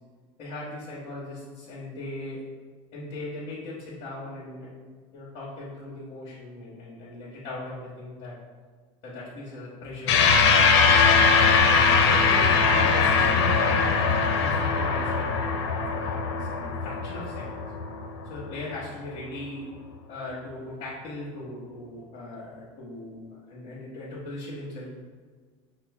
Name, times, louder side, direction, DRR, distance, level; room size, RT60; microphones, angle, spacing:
voice 1, 0.4-2.4 2.9-4.9 5.1-8.4 9.0-11.4 12.0-14.0 14.4-17.5 18.2-19.7 20.1-23.2 23.5-24.9, left 2 dB, 45° left, -7 dB, 1.2 m, -38 dB
sound 1, 10.1-18.8, left 5 dB, 90° left, 0.5 m, -21 dB
5.4 x 2.1 x 3.3 m, 1.5 s
cardioid pair, 145°, 14 cm